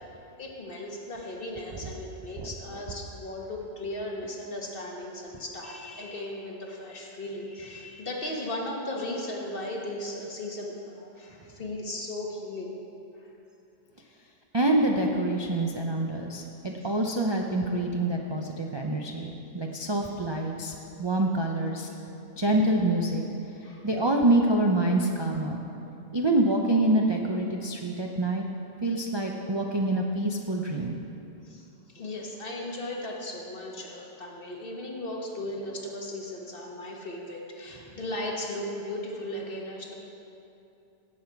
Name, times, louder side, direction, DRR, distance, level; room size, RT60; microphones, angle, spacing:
voice 1, 0.4-12.7 13.2-13.3 16.8-16.9 23.6-23.9 31.4-39.9, left 1 dB, 45° left, -1 dB, 1.6 m, -36 dB
voice 2, 14.5-21.9 22.4-23.3 23.8-25.6 26.1-28.4 28.8-31.0, right 1 dB, 30° right, 1 dB, 0.5 m, -26 dB
16.5 x 7.6 x 4.6 m, 2.8 s
omnidirectional pair, 1.3 m